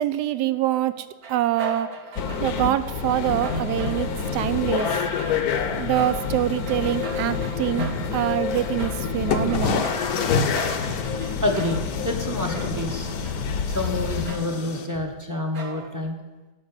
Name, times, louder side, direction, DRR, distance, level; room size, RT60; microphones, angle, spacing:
voice 1, 0.0-1.9 2.4-5.0 5.8-9.8, right 13 dB, 80° right, 14 dB, 1.2 m, -25 dB
sound 1, 0.7-2.7 3.4-4.4 4.7-13.4 13.7-14.7 15.5-16.0, right 3 dB, 60° right, 1.6 m, -41 dB
sound 2, 2.2-14.3, left 6 dB, 65° left, 1.2 m, -28 dB
sound 3, 8.5-8.6 9.3-14.9, left 5 dB, 85° left, 1.6 m, -30 dB
voice 2, 11.4-13.1 13.7-16.2, left 1 dB, 15° right, 3 dB, 0.8 m, -28 dB
12.0 x 6.0 x 8.3 m, 1.2 s
omnidirectional pair, 1.8 m